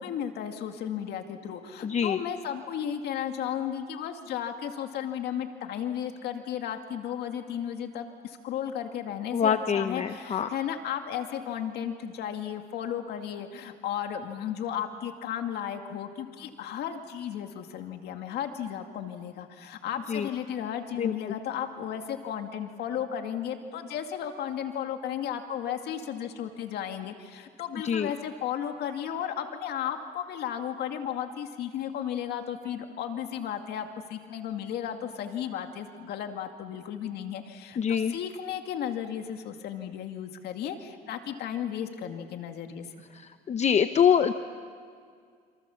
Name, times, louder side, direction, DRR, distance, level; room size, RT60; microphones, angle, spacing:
voice 1, 0.0-42.9, left 9 dB, 75° left, 5 dB, 2.2 m, -34 dB
voice 2, 1.8-2.2 9.3-10.5 20.1-20.3 21.0-21.4 27.8-28.1 37.8-38.1 43.5-44.3, left 8 dB, 40° left, 9 dB, 0.9 m, -25 dB
27.5 x 27.5 x 7.1 m, 2.1 s
cardioid pair, 110°, 17 cm